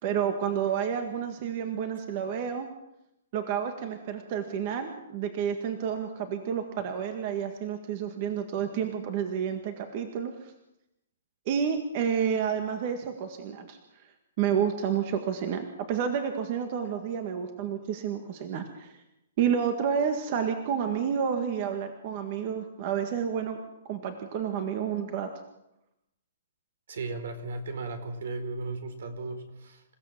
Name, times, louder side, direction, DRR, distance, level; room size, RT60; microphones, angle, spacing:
voice 1, 0.0-2.7 3.3-10.5 11.5-13.8 14.4-18.9 19.4-23.6 23.9-25.3, right 8 dB, 35° right, 6 dB, 1.8 m, -30 dB
voice 2, 26.9-29.8, right 3 dB, 70° right, 9 dB, 4.5 m, -36 dB
28.0 x 16.5 x 7.4 m, 0.86 s
hypercardioid pair, 170°, 0 cm